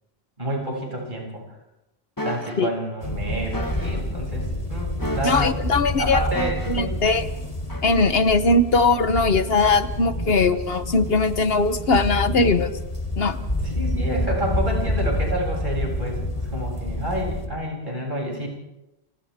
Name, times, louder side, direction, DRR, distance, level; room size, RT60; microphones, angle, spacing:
voice 1, 0.4-1.4 2.2-5.5 6.0-7.0 13.6-18.5, right 1 dB, 55° right, -2 dB, 8.1 m, -29 dB
sound 1, 2.2-2.6 3.5-4.0 5.0-5.6 6.3-6.9 7.7-7.9, left 1 dB, 20° left, 1.6 m, -32 dB
sound 2, 3.0-17.5, left 1 dB, 35° left, 3.5 m, -28 dB
voice 2, 5.2-6.2 6.7-7.3 7.8-12.7 13.2-13.4, left 3 dB, 70° left, 10 dB, 1.4 m, -20 dB
29.5 x 27.5 x 3.6 m, 0.93 s
omnidirectional pair, 1.1 m